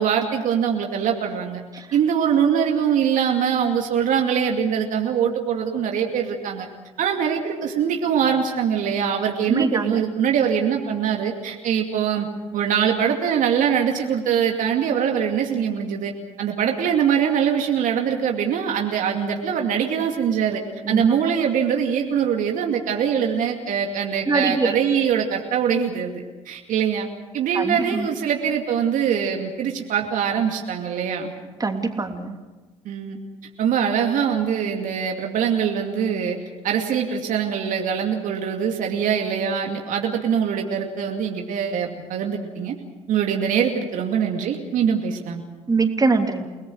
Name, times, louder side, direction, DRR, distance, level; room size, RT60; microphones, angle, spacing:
voice 1, 0.0-1.6 1.9-6.7 7.0-12.3 12.5-16.1 16.4-20.6 20.9-27.1 27.3-31.3 32.8-33.2 33.6-36.4 36.6-42.8 43.1-45.4, right 8 dB, 60° right, 2 dB, 2.5 m, -23 dB
voice 2, 9.5-10.0 20.8-21.0 24.3-24.7 27.5-28.1 31.6-32.3 45.7-46.5, right 3 dB, 25° right, 4 dB, 3.1 m, -23 dB
30.0 x 19.0 x 6.5 m, 1.2 s
hypercardioid pair, 55°, 15 cm